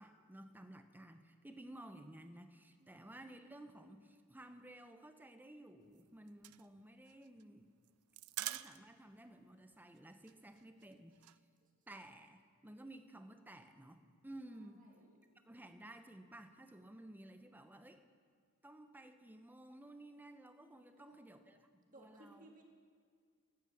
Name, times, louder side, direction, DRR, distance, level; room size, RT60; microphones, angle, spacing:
voice 1, 0.0-7.7 8.4-11.3 11.9-14.9 15.5-18.0 18.6-22.5, right 1 dB, 10° right, 8 dB, 0.7 m, -55 dB
sound 1, 5.8-9.2 9.4-9.5 9.8-10.0 10.3-11.4, right 15 dB, 85° right, 0.4 m, -46 dB
voice 2, 14.5-15.2 20.8-21.4 21.9-22.6, right 1 dB, 40° right, 1 dB, 1.7 m, -62 dB
12.5 x 10.0 x 7.1 m, 2.1 s
head